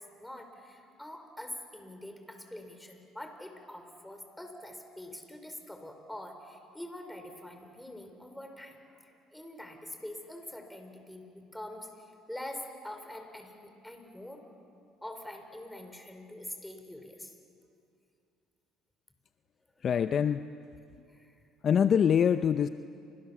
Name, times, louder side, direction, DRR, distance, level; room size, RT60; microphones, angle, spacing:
voice 1, 0.0-14.5 15.0-17.4 19.7-19.9 21.1-21.4, left 1 dB, 5° left, 5 dB, 5.1 m, -45 dB
voice 2, 19.8-20.5 21.6-22.7, left 8 dB, 45° left, 10 dB, 0.7 m, -24 dB
29.5 x 26.5 x 7.4 m, 2.4 s
supercardioid pair, 80°, 0 cm